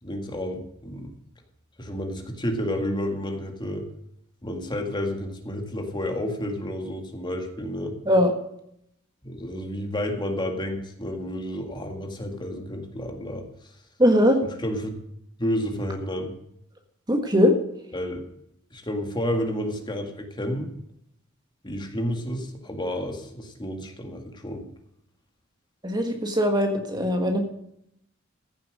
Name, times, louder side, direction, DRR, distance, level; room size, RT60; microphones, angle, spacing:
voice 1, 0.0-1.1 1.8-3.9 4.4-7.9 9.2-13.5 14.6-14.9 15.4-16.3 17.9-18.2 18.7-20.7 21.6-24.6, equal, 20° left, 4 dB, 1.9 m, -30 dB
voice 2, 14.0-14.4 17.1-17.5 25.8-27.4, equal, 20° right, 4 dB, 1.6 m, -20 dB
15.0 x 7.4 x 6.3 m, 0.74 s
head